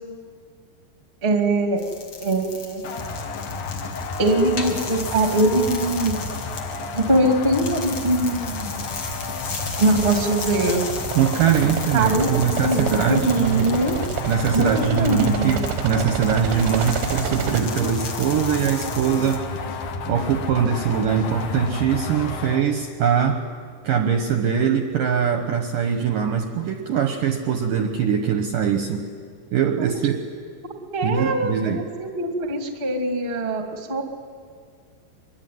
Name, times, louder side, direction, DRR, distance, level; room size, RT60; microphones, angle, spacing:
voice 1, 1.2-1.8 2.2-2.8 4.2-6.1 6.9-8.9 9.8-10.8 11.6-12.3 12.6-14.0 14.5-15.6 30.9-34.0, right 2 dB, 25° right, 4 dB, 1.3 m, -22 dB
sound 1, 1.8-19.4, left 4 dB, 40° left, 2.4 m, -36 dB
sound 2, 2.8-22.6, left 4 dB, 55° left, 2.5 m, -31 dB
sound 3, 9.0-17.6, right 11 dB, 90° right, 3.3 m, -30 dB
voice 2, 11.2-13.7 14.3-19.4 20.1-23.4 23.8-29.0 29.5-30.2 31.0-31.8, right 7 dB, 70° right, 6 dB, 2.2 m, -22 dB
24.0 x 22.0 x 9.4 m, 2.1 s
omnidirectional pair, 5.1 m